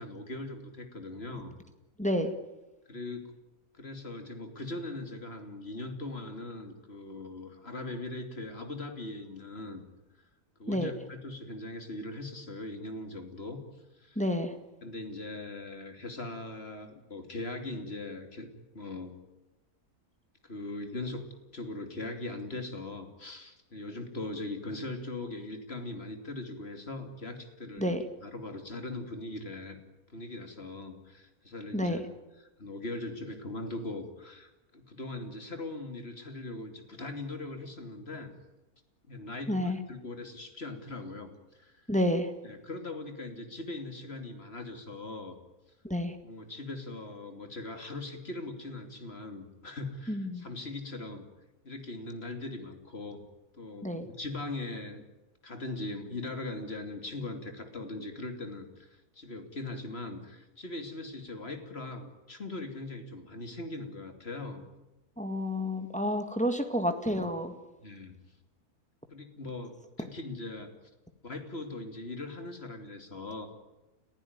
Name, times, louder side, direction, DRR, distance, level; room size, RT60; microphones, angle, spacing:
voice 1, 0.0-1.6 2.9-3.3 3.8-9.8 10.6-13.6 14.0-14.2 14.8-18.5 18.7-19.1 20.4-29.8 30.1-32.0 32.6-38.3 39.1-41.9 42.4-45.4 46.2-51.3 51.6-53.2 53.6-55.0 55.4-64.6 67.8-68.2 69.1-70.7 71.2-73.5, left 2 dB, 40° left, 6 dB, 3.0 m, -40 dB
voice 2, 2.0-2.3 10.7-10.9 14.2-14.5 27.8-28.0 31.7-32.1 39.5-39.8 41.9-42.3 45.8-46.2 50.1-50.4 53.8-54.1 65.2-67.5, equal, 5° left, 6 dB, 1.9 m, -29 dB
30.0 x 15.5 x 9.6 m, 1.0 s
omnidirectional pair, 1.6 m